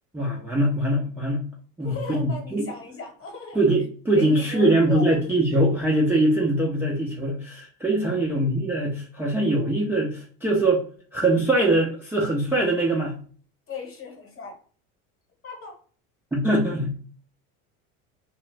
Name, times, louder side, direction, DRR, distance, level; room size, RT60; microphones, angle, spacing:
voice 1, 0.1-1.4 1.8-2.7 3.5-10.8 11.1-13.1 16.3-16.9, right 1 dB, 5° right, -4 dB, 0.4 m, -22 dB
voice 2, 1.8-3.6 4.2-5.1 8.0-8.3 13.7-14.6 15.4-15.7, left 5 dB, 30° left, 2 dB, 1.0 m, -36 dB
2.3 x 2.0 x 3.1 m, 0.42 s
hypercardioid pair, 85°, 42 cm